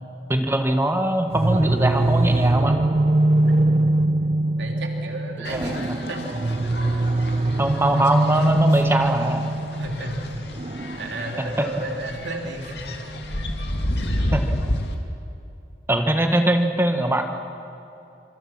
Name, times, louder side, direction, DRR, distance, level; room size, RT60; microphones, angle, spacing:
voice 1, 0.3-2.7 5.5-5.7 7.6-9.4 14.3-14.4 15.9-17.2, right 1 dB, 15° right, 5 dB, 1.5 m, -21 dB
sound 1, 1.3-14.1, right 2 dB, 35° right, 0.5 m, -23 dB
voice 2, 4.6-6.2 9.8-10.4 11.0-13.0 13.3-13.5, right 1 dB, 90° right, 2 dB, 3.1 m, -33 dB
sound 2, 5.4-14.9, left 1 dB, 65° left, 2.4 m, -31 dB
26.5 x 25.5 x 6.0 m, 2.8 s
head